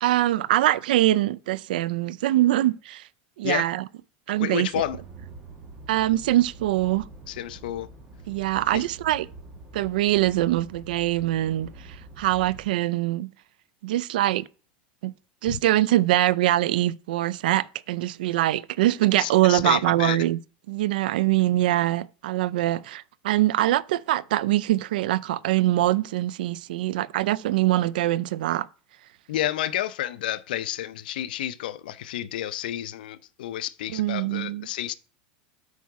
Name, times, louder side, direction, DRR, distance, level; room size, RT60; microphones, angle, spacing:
voice 1, 0.0-3.1 3.4-3.9 4.3-4.7 5.9-7.1 8.3-9.3 9.7-13.3 13.8-14.5 15.0-15.1 15.4-20.4 20.7-28.7 33.9-34.7, right 15 dB, 80° right, 0.4 m, -23 dB
voice 2, 4.4-5.0 7.3-7.9 8.7-8.8 15.5-15.6 19.2-20.2 29.3-34.9, left 12 dB, 90° left, 0.5 m, -30 dB
sound 1, 4.7-12.7, right 3 dB, 25° right, 1.9 m, -45 dB
8.3 x 4.8 x 4.7 m
supercardioid pair, 160°, 5 cm